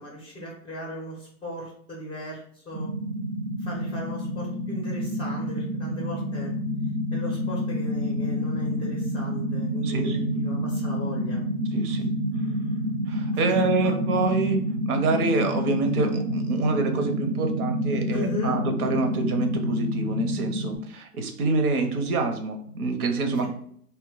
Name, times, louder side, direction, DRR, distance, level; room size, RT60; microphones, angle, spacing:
voice 1, 0.0-2.9 3.6-6.5 7.1-11.4 13.3-13.9 18.1-18.6, left 1 dB, 15° left, -2 dB, 0.5 m, -37 dB
sound 1, 2.7-20.8, equal, 45° right, 0.5 m, -28 dB
voice 2, 9.8-10.2 11.7-12.1 13.1-23.5, right 3 dB, 75° right, 6 dB, 0.7 m, -26 dB
2.2 x 2.1 x 3.8 m, 0.63 s
hypercardioid pair, 120°, 45 cm